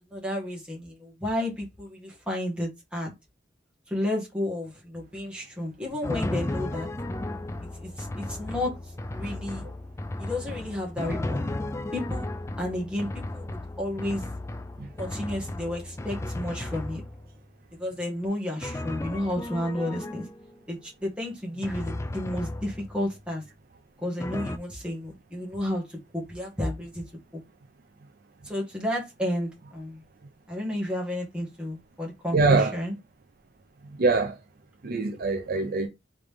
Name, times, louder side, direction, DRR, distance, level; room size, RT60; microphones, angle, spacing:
voice 1, 0.1-3.1 3.9-6.9 7.8-8.7 9.1-9.6 10.2-11.4 11.9-12.3 12.6-14.2 15.0-17.0 17.8-20.3 20.7-23.4 24.0-27.0 27.3-27.4 28.4-30.0 30.5-33.0, left 1 dB, 5° right, 1.5 m, -32 dB
Drum, 6.0-17.4 18.6-20.6 21.6-23.1 24.2-24.6, left 1 dB, 15° left, 0.3 m, -34 dB
voice 2, 32.3-32.8 34.0-34.4 34.8-35.9, right 3 dB, 50° right, 0.5 m, -23 dB
3.8 x 3.2 x 3.4 m
head